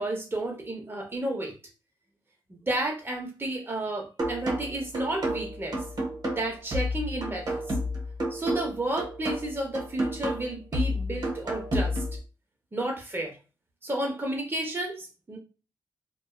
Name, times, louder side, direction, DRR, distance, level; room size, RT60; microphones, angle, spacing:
voice 1, 0.0-1.5 2.5-5.8 6.4-7.6 8.3-12.0 12.7-13.4 13.8-15.4, right 1 dB, 25° right, 1 dB, 0.8 m, -32 dB
sound 1, 4.2-12.2, equal, 55° right, 0.9 m, -31 dB
2.6 x 2.2 x 2.3 m, 0.31 s
cardioid pair, 90°, 8 cm